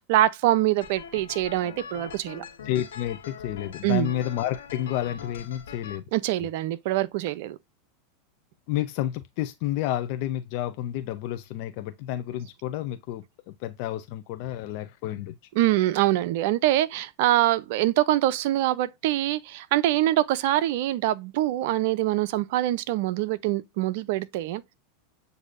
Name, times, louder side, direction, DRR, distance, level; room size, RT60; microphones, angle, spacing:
voice 1, 0.0-2.4 3.8-4.1 6.1-7.6 15.6-24.7, right 14 dB, 65° right, 0.5 m, -24 dB
sound 1, 0.8-6.0, left 6 dB, 80° left, 1.2 m, -42 dB
voice 2, 2.6-6.0 8.7-15.4, left 12 dB, 60° left, 0.5 m, -30 dB
7.9 x 2.7 x 2.4 m
hypercardioid pair, 100°, 0 cm